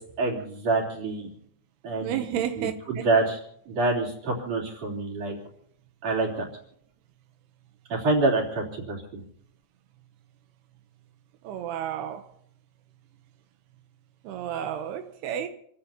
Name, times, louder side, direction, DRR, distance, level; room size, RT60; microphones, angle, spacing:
voice 1, 0.2-1.3 1.8-3.4 3.7-5.4 6.0-6.5 7.9-9.2, right 3 dB, 40° right, 4.4 m, -27 dB
voice 2, 2.0-3.1 11.4-12.3 14.2-15.5, right 10 dB, 85° right, 2.9 m, -31 dB
30.0 x 16.0 x 2.9 m
omnidirectional pair, 4.6 m